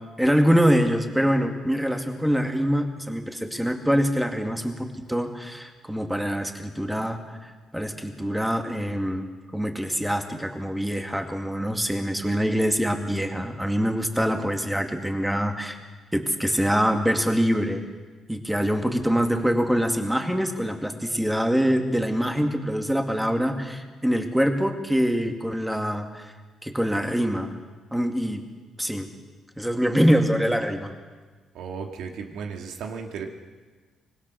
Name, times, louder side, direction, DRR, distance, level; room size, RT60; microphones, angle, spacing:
voice 1, 0.2-9.3 9.5-15.8 16.1-17.8 18.3-26.3 26.6-27.5 27.9-28.4 28.8-29.1 29.6-30.9, equal, 5° right, 4 dB, 2.2 m, -24 dB
voice 2, 31.5-33.3, right 6 dB, 85° right, 3 dB, 2.4 m, -35 dB
25.0 x 20.0 x 6.4 m, 1.4 s
cardioid pair, 115°, 0 cm